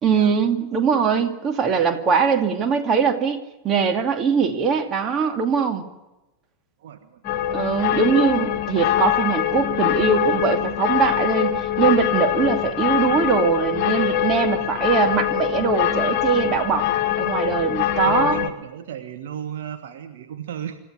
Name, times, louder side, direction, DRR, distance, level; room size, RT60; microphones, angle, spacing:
voice 1, 0.0-5.8 7.5-16.9 17.2-18.4, right 6 dB, 30° right, 6 dB, 2.4 m, -21 dB
voice 2, 6.8-7.2 18.0-20.8, right 9 dB, 55° right, 7 dB, 1.5 m, -34 dB
sound 1, 7.2-18.5, left 11 dB, 40° left, 1.7 m, -23 dB
26.0 x 14.0 x 9.6 m, 1.0 s
figure-of-eight pair, 90°, 0 cm